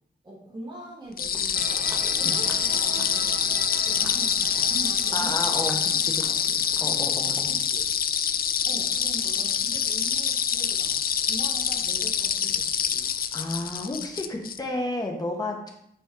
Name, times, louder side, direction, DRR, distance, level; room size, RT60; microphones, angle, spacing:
voice 1, 0.2-6.5 7.5-7.9 8.6-13.0, right 1 dB, 25° right, -5 dB, 1.7 m, -43 dB
Walk footsteps, 1.0-1.1 1.3-1.5 1.9-2.1 2.5-2.7 3.0-3.2 3.5-3.7 4.0-4.2 4.6-4.8 5.1-5.3 5.7-5.9 6.2-6.4 6.7-6.9 7.3-7.5, equal, 5° right, 1.1 m, -46 dB
sound 1, 1.2-14.6, left 7 dB, 60° left, 0.4 m, -25 dB
sound 2, 1.5-8.3, right 6 dB, 70° right, 0.4 m, -43 dB
voice 2, 5.1-7.6 12.4-12.5 13.3-15.7, left 1 dB, 25° left, 1 dB, 1.2 m, -32 dB
8.6 x 4.1 x 3.8 m, 0.73 s
wide cardioid pair, 150°, 17 cm